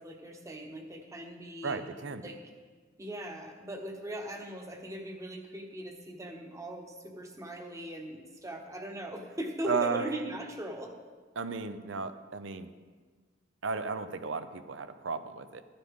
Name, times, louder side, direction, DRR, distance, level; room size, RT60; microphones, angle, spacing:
voice 1, 0.0-1.8 2.2-2.4 3.0-10.9, equal, 15° right, 3 dB, 1.1 m, -40 dB
voice 2, 1.6-2.3 9.7-10.1 11.4-12.7 13.6-15.6, right 5 dB, 70° right, 11 dB, 0.7 m, -34 dB
13.5 x 9.8 x 3.7 m, 1.5 s
head